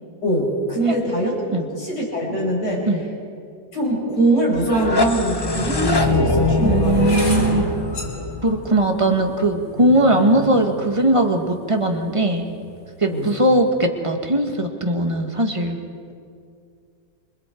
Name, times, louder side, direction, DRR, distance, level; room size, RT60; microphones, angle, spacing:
voice 1, 0.2-2.9 3.7-7.2 13.1-13.3, right 1 dB, 55° left, -2 dB, 6.3 m, -22 dB
sound 1, 4.6-9.5, left 2 dB, 20° left, 0.7 m, -22 dB
sound 2, 4.8-4.9 5.7-11.8 12.5-12.8 13.1-13.5, equal, 40° left, 3.3 m, -30 dB
voice 2, 6.6-7.7 8.4-12.5 13.0-15.8, right 1 dB, 15° right, 3 dB, 1.6 m, -19 dB
26.5 x 26.0 x 4.6 m, 2.3 s
omnidirectional pair, 2.1 m